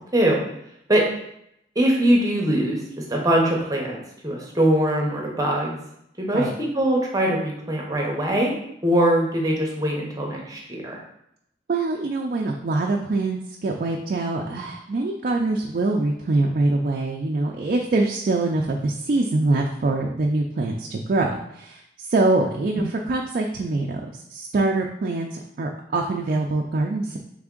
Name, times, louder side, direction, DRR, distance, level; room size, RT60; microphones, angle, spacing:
voice 1, 1.8-2.8 3.1-5.8 6.2-8.5 8.8-11.0, right 1 dB, 20° right, -1 dB, 0.8 m, -22 dB
voice 2, 11.7-27.2, right 2 dB, 50° right, 1 dB, 0.4 m, -24 dB
3.5 x 3.4 x 3.7 m, 0.77 s
head